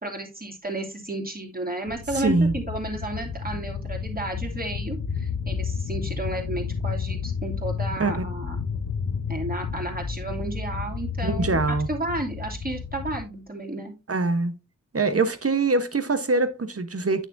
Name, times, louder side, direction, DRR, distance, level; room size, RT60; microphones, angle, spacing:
voice 1, 0.0-8.6 9.3-13.9, right 1 dB, 30° right, 2.8 m, -32 dB
sound 1, 1.9-13.2, left 6 dB, 80° left, 0.9 m, -31 dB
voice 2, 2.1-2.5 8.0-8.2 11.2-11.9 14.1-14.5 14.9-17.3, right 3 dB, 50° right, 1.1 m, -23 dB
9.0 x 6.5 x 2.6 m
wide cardioid pair, 50°, 31 cm